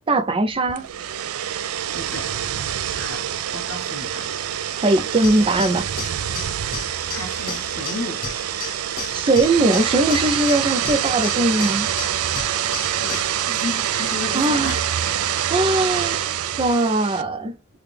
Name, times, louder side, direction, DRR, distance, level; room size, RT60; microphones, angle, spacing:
voice 1, 0.1-0.9 4.8-5.9 9.1-11.9 14.3-14.7 15.5-17.6, right 2 dB, 25° right, 0.4 m, -20 dB
sound 1, 0.7-17.2, right 10 dB, 80° right, 0.4 m, -26 dB
voice 2, 1.9-2.3 2.9-4.3 6.7-6.8 7.1-8.3 13.0-14.9, left 3 dB, 70° left, 1.2 m, -33 dB
sound 2, 5.2-13.4, left 5 dB, 45° left, 1.3 m, -35 dB
3.3 x 2.3 x 3.5 m
head